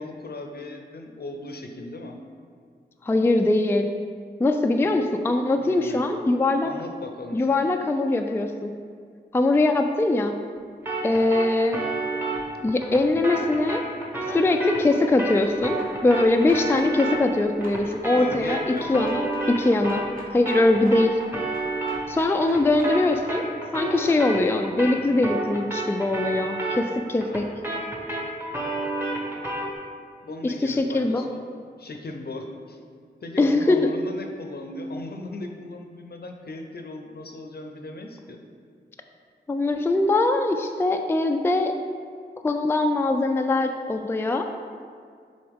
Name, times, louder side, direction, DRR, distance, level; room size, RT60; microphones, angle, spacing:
voice 1, 0.0-2.2 4.8-5.0 5.6-6.0 6.6-7.6 18.1-19.0 30.2-31.5 31.8-32.8 33.2-38.4, left 2 dB, 60° left, 4 dB, 0.6 m, -37 dB
voice 2, 3.0-3.9 4.4-6.7 7.3-8.7 9.3-10.3 11.0-11.8 12.6-13.9 14.3-18.6 18.9-20.0 20.3-21.2 22.1-23.4 23.7-27.4 30.4-31.2 33.4-33.9 39.5-41.8 42.4-44.5, left 2 dB, 15° left, 5 dB, 0.3 m, -22 dB
sound 1, 10.9-20.2 20.5-29.8, right 2 dB, 10° right, 1.1 m, -31 dB
sound 2, 15.4-22.9, equal, 50° right, 1.3 m, -44 dB
6.8 x 3.9 x 3.5 m, 2.1 s
cardioid pair, 55°, 18 cm